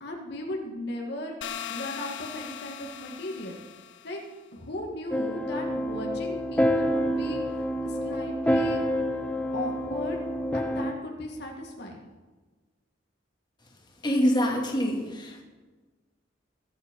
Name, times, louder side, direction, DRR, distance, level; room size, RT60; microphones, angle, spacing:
voice 1, 0.0-3.6 4.0-4.2 4.5-8.8 9.5-10.2 10.5-12.0, left 1 dB, 60° left, 1 dB, 1.9 m, -37 dB
sound 1, 1.4-4.3, left 9 dB, 90° left, 0.9 m, -39 dB
sound 2, 5.1-10.9, equal, 10° left, 0.7 m, -28 dB
voice 2, 14.0-15.4, equal, 25° left, 0 dB, 2.2 m, -25 dB
22.0 x 8.1 x 5.2 m, 1.3 s
head